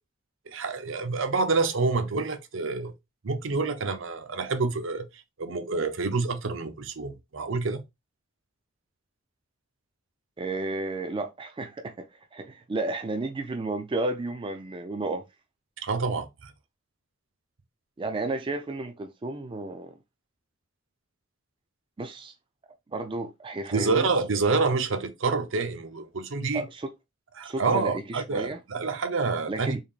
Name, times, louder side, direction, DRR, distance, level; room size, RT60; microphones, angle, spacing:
voice 1, 0.5-2.9 3.2-5.0 5.4-7.8 15.8-16.5 23.7-26.6 27.4-29.8, right 4 dB, 70° right, 0.6 m, -27 dB
voice 2, 10.4-15.2 18.0-20.0 22.0-22.3 22.9-24.1 26.5-26.9 27.4-28.6 29.5-29.8, right 2 dB, 25° right, 0.4 m, -32 dB
3.6 x 3.5 x 2.4 m
head